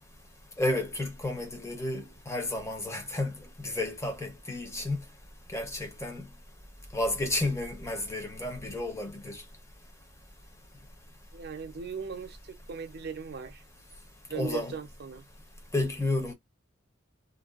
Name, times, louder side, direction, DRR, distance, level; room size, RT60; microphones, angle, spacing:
voice 1, 0.6-5.0 5.5-6.3 6.9-9.4 14.3-14.8 15.7-16.3, left 2 dB, 15° left, 0.7 m, -32 dB
voice 2, 11.3-13.6 14.3-15.3, right 5 dB, 55° right, 0.5 m, -38 dB
2.5 x 2.2 x 2.4 m
head